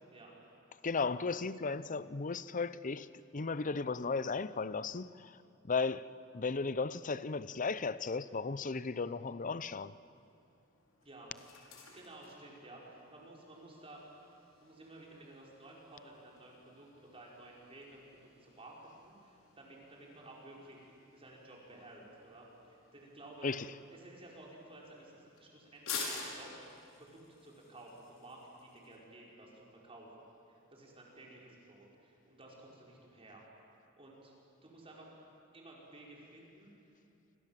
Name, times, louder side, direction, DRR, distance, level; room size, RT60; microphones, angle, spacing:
voice 1, 0.8-3.1 3.3-5.4 5.6-6.0 6.3-10.0 23.4-23.7, left 4 dB, 40° left, 0.7 m, -35 dB
sound 1, 9.4-29.0, left 5 dB, 90° left, 5.7 m, -51 dB
voice 2, 11.0-11.3 11.9-14.0 14.6-18.0 18.4-23.5 23.9-26.5 27.4-33.4 34.0-34.3 34.6-35.1 35.5-36.7, right 2 dB, 30° right, 5.6 m, -54 dB
28.0 x 26.0 x 7.6 m
head